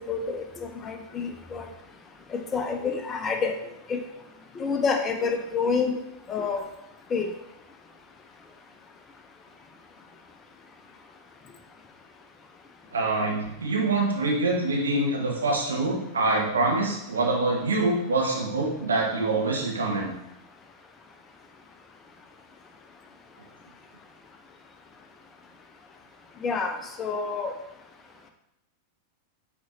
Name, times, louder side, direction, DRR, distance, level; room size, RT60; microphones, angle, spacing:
voice 1, 0.1-1.7 2.3-3.5 3.9-4.0 4.6-5.9 6.3-6.6 7.1-7.3 26.4-27.5, left 5 dB, 20° left, 5 dB, 0.8 m, -28 dB
voice 2, 12.9-20.1, right 2 dB, 70° right, -2 dB, 1.6 m, -25 dB
8.3 x 4.3 x 2.9 m, 0.85 s
figure-of-eight pair, 90°, 0 cm